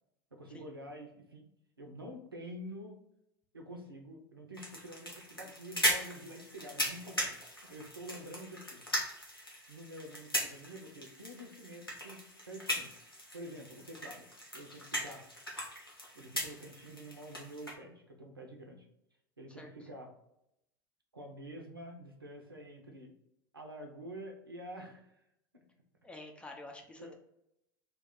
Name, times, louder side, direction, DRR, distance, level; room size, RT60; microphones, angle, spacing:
voice 1, 0.3-1.5 1.8-3.0 3.5-8.8 9.7-12.9 13.3-14.3 14.5-15.3 16.1-18.9 19.4-20.1 21.1-23.1 23.5-25.2 25.5-25.6 27.0-27.1, equal, 85° right, 2 dB, 0.6 m, -48 dB
sound 1, 4.5-17.7, equal, 90° left, 0.7 m, -38 dB
voice 2, 26.0-27.1, left 2 dB, 10° left, 2 dB, 0.5 m, -48 dB
2.9 x 2.1 x 3.7 m, 0.79 s
figure-of-eight pair, 80°, 12 cm